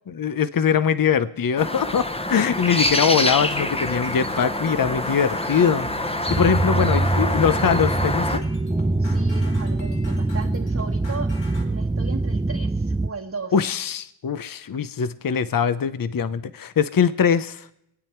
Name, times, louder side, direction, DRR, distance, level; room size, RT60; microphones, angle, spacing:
voice 1, 0.2-5.9 6.3-8.4 13.5-17.7, left 7 dB, 45° left, 14 dB, 0.7 m, -22 dB
sound 1, 1.6-8.4, left 1 dB, 10° left, 1.0 m, -26 dB
sound 2, 2.4-11.6, left 2 dB, 65° left, 2.6 m, -42 dB
sound 3, 6.3-13.1, right 2 dB, 10° right, 0.5 m, -24 dB
voice 2, 6.5-7.1 9.0-11.3 11.6-13.5, right 4 dB, 30° right, 0 dB, 1.3 m, -35 dB
25.5 x 9.1 x 4.5 m, 0.78 s
wide cardioid pair, 80°, 49 cm